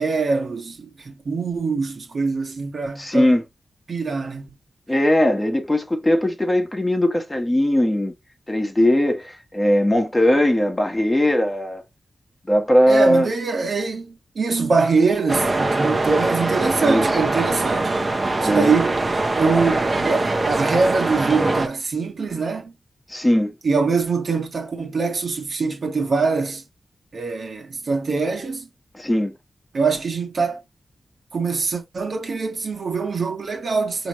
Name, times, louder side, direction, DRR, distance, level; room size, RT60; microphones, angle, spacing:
voice 1, 0.0-3.3 3.9-4.5 12.9-17.9 18.4-19.0 19.3-22.7 23.6-26.6 27.1-28.7 29.7-30.6 31.3-34.1, right 4 dB, 65° right, 1.3 m, -23 dB
voice 2, 3.0-3.4 4.9-8.1 8.5-11.8 12.5-13.3 16.8-17.1 18.4-18.7 23.1-23.5 28.9-29.3, left 1 dB, 15° left, 1.2 m, -19 dB
sound 1, 15.3-21.7, right 2 dB, 35° right, 0.8 m, -22 dB
5.1 x 3.0 x 3.0 m
wide cardioid pair, 105°, 0 cm